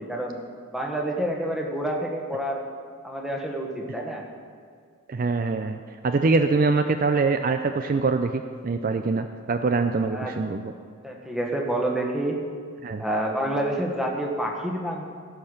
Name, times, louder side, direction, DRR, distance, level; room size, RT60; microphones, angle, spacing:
voice 1, 0.1-0.4 0.7-2.6 3.0-4.2 10.1-10.4 11.0-12.4 13.0-15.0, right 1 dB, ahead, 0 dB, 1.2 m, -28 dB
voice 2, 5.1-10.7 12.8-13.0, right 4 dB, 40° right, 8 dB, 0.3 m, -24 dB
16.0 x 5.7 x 6.5 m, 2.1 s
head